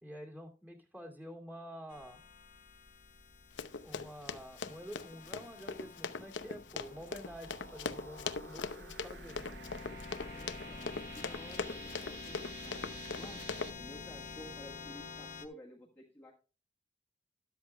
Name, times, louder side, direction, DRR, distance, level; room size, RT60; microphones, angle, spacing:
voice 1, 0.0-2.2 3.8-9.5, equal, 10° right, 0 dB, 2.4 m, -48 dB
sound 1, 1.9-15.5, left 4 dB, 45° left, 0.9 m, -49 dB
Run, 3.6-13.7, left 4 dB, 90° left, 0.8 m, -41 dB
sound 2, 6.8-13.7, right 9 dB, 60° right, 0.6 m, -53 dB
voice 2, 10.3-12.8 13.1-13.5 13.8-16.3, left 1 dB, 10° left, -3 dB, 1.4 m, -52 dB
13.0 x 11.5 x 2.2 m, 0.33 s
head